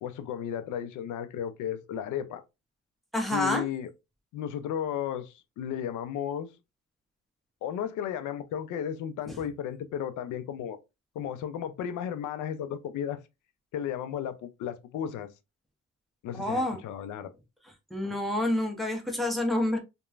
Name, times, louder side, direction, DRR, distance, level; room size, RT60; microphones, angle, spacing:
voice 1, 0.0-2.4 3.3-3.9 4.3-6.5 7.6-10.8 11.2-13.2 13.7-15.3 16.2-17.3, left 9 dB, 80° left, 0.5 m, -34 dB
voice 2, 3.1-3.6 9.3-9.4 16.3-16.8 17.9-19.8, left 1 dB, ahead, 0.8 m, -28 dB
3.0 x 2.2 x 2.3 m
cardioid pair, 90°, 30 cm